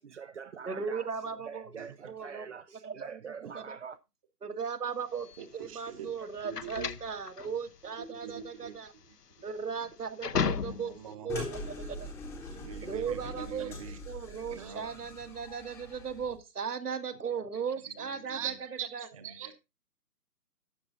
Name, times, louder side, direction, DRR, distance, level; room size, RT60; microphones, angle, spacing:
voice 1, 0.0-4.0, right 6 dB, 50° right, 0.5 m, -45 dB
voice 2, 0.7-1.7 2.1-2.5 2.8-3.2 3.6-3.8 4.4-8.9 9.4-11.0 11.2-12.1 12.8-13.7 14.1-18.5 18.9-19.1, right 6 dB, 70° right, 2.0 m, -37 dB
sound 1, 5.2-11.1, left 6 dB, 85° left, 1.0 m, -35 dB
voice 3, 5.4-6.1 6.4-6.9 8.1-8.7 9.4-9.5 10.7-11.3 12.4-14.0 14.5-15.0 18.0-19.5, right 8 dB, 20° right, 1.0 m, -42 dB
sound 2, 11.3-16.4, left 2 dB, 5° left, 0.9 m, -43 dB
12.5 x 8.0 x 3.9 m
figure-of-eight pair, 150°, 47 cm